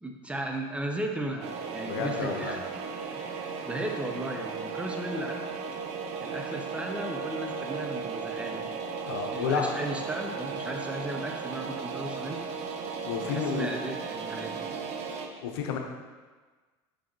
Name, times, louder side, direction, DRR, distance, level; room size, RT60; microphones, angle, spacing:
voice 1, 0.0-2.6 3.1-5.5 6.2-8.7 9.3-12.4 13.2-14.7, right 1 dB, 10° right, 3 dB, 0.8 m, -36 dB
sound 1, 1.4-15.3, right 5 dB, 60° right, 0.7 m, -36 dB
voice 2, 1.8-2.6 9.0-9.7 13.0-13.7 15.4-15.8, left 6 dB, 85° left, 3 dB, 0.8 m, -30 dB
6.4 x 5.4 x 3.0 m, 1.4 s
supercardioid pair, 95°, 13 cm